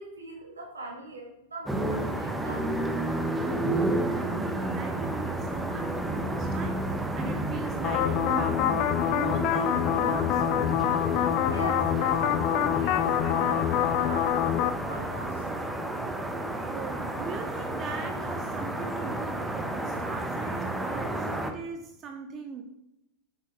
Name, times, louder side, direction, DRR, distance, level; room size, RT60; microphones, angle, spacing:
voice 1, 0.0-2.7 11.5-14.4 14.8-15.5, right 1 dB, 75° right, 0 dB, 2.2 m, -41 dB
sound 1, 1.7-21.5, right 1 dB, 5° right, 1.0 m, -31 dB
voice 2, 3.6-10.5 16.6-22.6, right 5 dB, 30° right, 6 dB, 0.8 m, -39 dB
sound 2, 5.0-15.3, left 3 dB, 80° left, 3.6 m, -45 dB
sound 3, 7.8-14.7, left 11 dB, 40° left, 0.5 m, -26 dB
9.0 x 6.6 x 3.8 m, 0.87 s
figure-of-eight pair, 90°, 0 cm